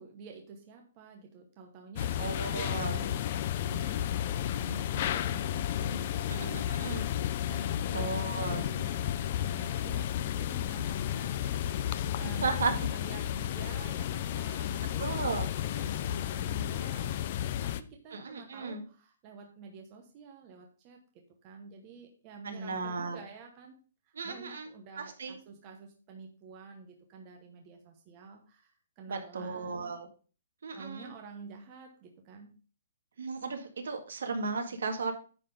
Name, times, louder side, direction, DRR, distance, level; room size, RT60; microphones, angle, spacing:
voice 1, 0.0-3.3 3.6-7.2 7.5-9.1 9.4-17.3 17.6-23.8 24.0-30.0 30.7-32.5, right 4 dB, 20° right, 2 dB, 0.9 m, -49 dB
sound 1, 2.0-17.8, left 11 dB, 30° left, 0.4 m, -32 dB
voice 2, 2.2-3.0 6.4-7.0 7.9-8.6 12.4-12.8 15.0-15.5 18.1-18.8 22.4-23.2 24.2-24.7 25.0-25.4 29.1-30.0 30.6-31.1 33.2-35.1, right 4 dB, 65° right, 5 dB, 1.8 m, -35 dB
9.9 x 4.1 x 5.1 m, 0.37 s
hypercardioid pair, 180°, 0 cm